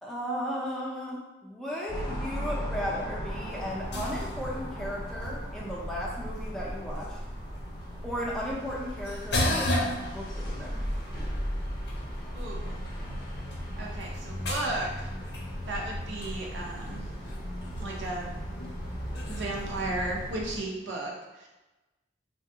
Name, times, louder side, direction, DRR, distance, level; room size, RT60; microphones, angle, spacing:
voice 1, 0.0-7.2 8.0-10.9, equal, ahead, -5 dB, 0.5 m, -35 dB
sound 1, 1.9-20.6, equal, 25° left, 0.8 m, -37 dB
sound 2, 3.3-20.3, left 1 dB, 60° left, 0.6 m, -37 dB
voice 2, 12.3-12.8 13.8-15.1 15.7-17.0 17.8-18.3 19.3-21.5, right 2 dB, 70° right, -2 dB, 0.6 m, -35 dB
3.3 x 2.3 x 2.7 m, 1.1 s
head